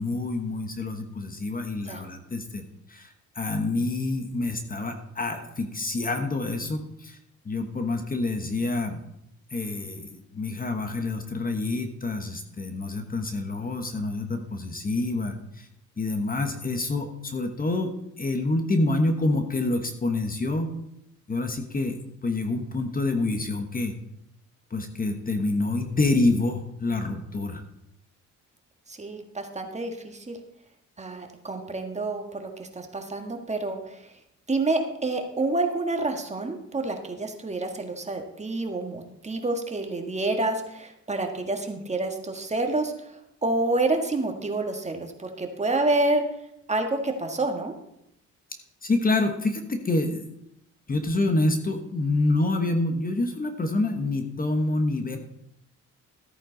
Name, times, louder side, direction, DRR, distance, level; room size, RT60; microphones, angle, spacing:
voice 1, 0.0-7.2 7.4-9.0 9.5-15.7 16.0-17.9 18.2-20.7 21.3-23.9 24.7-27.6 48.8-50.3 50.9-55.2, left 2 dB, 30° left, 6 dB, 1.3 m, -27 dB
voice 2, 28.9-30.4 31.0-34.1 34.5-46.2 46.7-47.7, right 2 dB, 20° right, 4 dB, 1.6 m, -28 dB
13.5 x 8.9 x 4.0 m, 0.80 s
cardioid pair, 90°, 30 cm